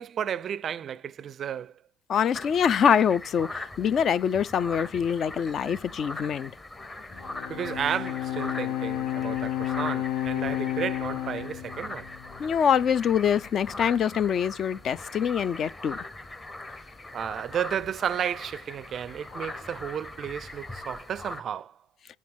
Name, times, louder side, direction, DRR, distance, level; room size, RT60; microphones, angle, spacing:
voice 1, 0.0-1.7 7.5-12.1 17.1-21.8, right 9 dB, 30° right, 0.5 m, -33 dB
voice 2, 2.1-6.5 12.4-16.0, left 8 dB, 35° left, 0.4 m, -24 dB
sound 1, 2.3-21.4, left 2 dB, 15° left, 0.9 m, -41 dB
Bowed string instrument, 7.1-12.6, left 13 dB, 75° left, 0.8 m, -31 dB
9.5 x 5.1 x 5.2 m
cardioid pair, 160°, 0 cm